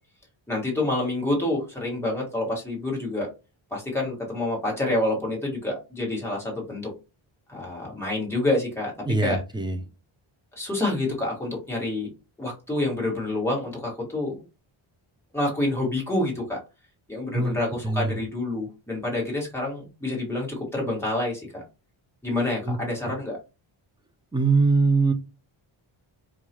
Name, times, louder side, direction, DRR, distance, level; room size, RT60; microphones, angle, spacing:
voice 1, 0.5-3.3 3.7-6.9 7.5-8.9 9.2-9.4 10.5-12.1 12.4-14.4 15.3-16.6 17.1-21.6 22.2-23.4, left 2 dB, 5° left, -3 dB, 1.4 m, -27 dB
voice 2, 9.1-9.8 17.3-17.6 17.8-18.2 22.6-22.8 24.3-25.1, right 3 dB, 10° right, 8 dB, 0.3 m, -22 dB
4.6 x 2.3 x 2.8 m, 0.29 s
wide cardioid pair, 155°, 49 cm